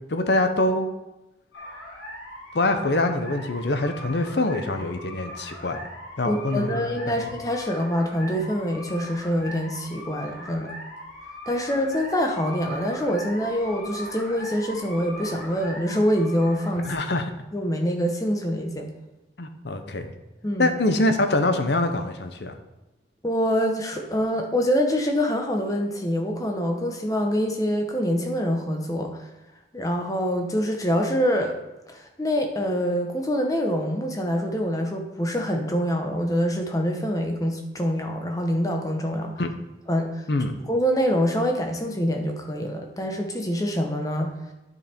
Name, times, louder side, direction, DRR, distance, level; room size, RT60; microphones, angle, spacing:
voice 1, 0.1-0.9 2.5-5.8 6.2-7.1 16.9-17.3 19.4-20.1 20.6-22.5 39.4-39.5 40.3-40.5, left 2 dB, 60° left, 7 dB, 0.8 m, -24 dB
sound 1, 1.5-16.9, left 1 dB, 85° left, 3.2 m, -40 dB
voice 2, 6.2-10.7 11.5-16.9 17.5-18.9 20.4-20.7 23.2-29.3 29.7-31.5 31.9-39.3 39.9-40.2 40.7-44.3, equal, 20° left, 3 dB, 0.9 m, -25 dB
9.6 x 5.4 x 4.4 m, 1.0 s
head